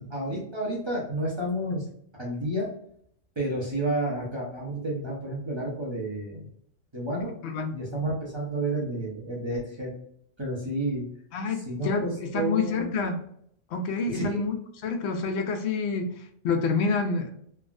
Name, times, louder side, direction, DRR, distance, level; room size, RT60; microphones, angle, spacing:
voice 1, 0.1-1.8 2.2-2.7 3.4-6.4 6.9-7.3 7.7-9.9 10.4-11.0 11.7-12.1 12.3-12.9 14.1-14.4, right 1 dB, 25° right, -5 dB, 0.7 m, -30 dB
voice 2, 7.4-7.8 11.3-13.2 13.7-14.6 14.8-17.3, left 4 dB, 70° left, 6 dB, 0.8 m, -28 dB
3.3 x 2.1 x 2.4 m, 0.67 s
omnidirectional pair, 1.3 m